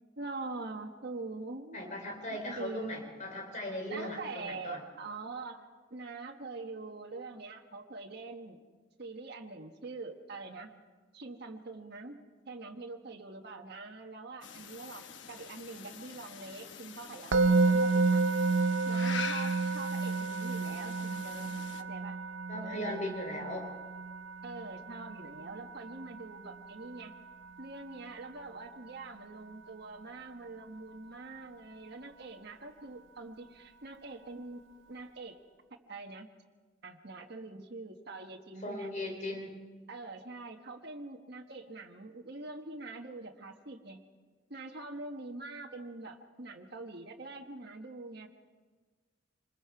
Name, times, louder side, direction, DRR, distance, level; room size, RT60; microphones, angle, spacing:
voice 1, 0.0-2.0 2.3-2.9 3.9-5.6 5.9-8.6 9.0-10.7 11.1-12.2 12.5-18.4 18.9-22.2 22.6-23.0 24.4-27.1 27.6-35.4 35.9-36.3 36.8-38.9 39.9-44.0 44.5-48.3, right 3 dB, 60° right, 2 dB, 1.4 m, -44 dB
voice 2, 1.7-4.8 22.5-23.7 38.6-39.6, left 1 dB, 40° left, 2 dB, 4.0 m, -38 dB
sound 1, 14.4-21.8, left 5 dB, 70° left, 1.0 m, -44 dB
Musical instrument, 17.3-28.4, right 3 dB, 75° right, 0.6 m, -31 dB
26.0 x 21.0 x 4.8 m, 1.4 s
head